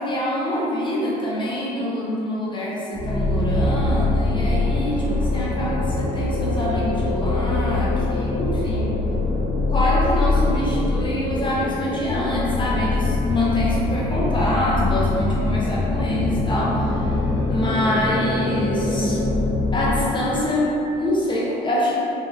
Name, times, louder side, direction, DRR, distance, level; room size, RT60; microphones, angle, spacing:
voice 1, 0.0-9.0 9.7-17.2 17.5-19.2 19.7-22.0, left 1 dB, 30° left, -5 dB, 0.6 m, -25 dB
sound 1, 2.9-20.4, left 2 dB, 55° left, 1.2 m, -23 dB
3.7 x 3.0 x 2.6 m, 2.8 s
cardioid pair, 110°, 17 cm